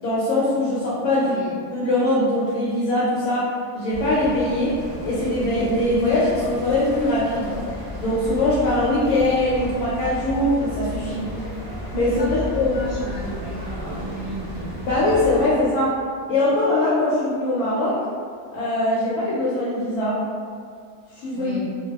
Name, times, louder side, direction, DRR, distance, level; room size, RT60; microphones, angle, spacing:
voice 1, 0.0-1.4 1.7-3.5 3.7-4.7 5.0-7.6 8.0-11.3 11.9-12.8 14.8-15.9 16.3-18.0 18.5-20.2 21.1-21.5, left 1 dB, 70° left, -7 dB, 1.0 m, -21 dB
voice 2, 1.2-1.6 12.2-12.5 12.7-14.6 21.3-21.7, right 1 dB, 30° right, -15 dB, 0.4 m, -34 dB
sound 1, 3.9-15.5, left 1 dB, 5° right, 1.0 m, -33 dB
2.5 x 2.2 x 2.3 m, 2.1 s
omnidirectional pair, 1.7 m